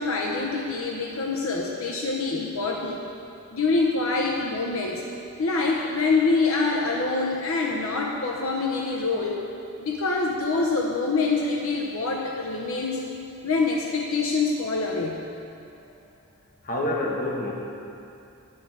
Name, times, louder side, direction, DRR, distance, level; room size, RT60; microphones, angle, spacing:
voice 1, 0.0-3.0 3.5-5.0 5.4-9.4 9.8-13.0 13.4-15.2, left 3 dB, 70° left, -1 dB, 0.7 m, -25 dB
voice 2, 16.6-17.5, left 1 dB, 40° left, -2 dB, 1.1 m, -27 dB
10.5 x 4.9 x 5.9 m, 2.7 s
head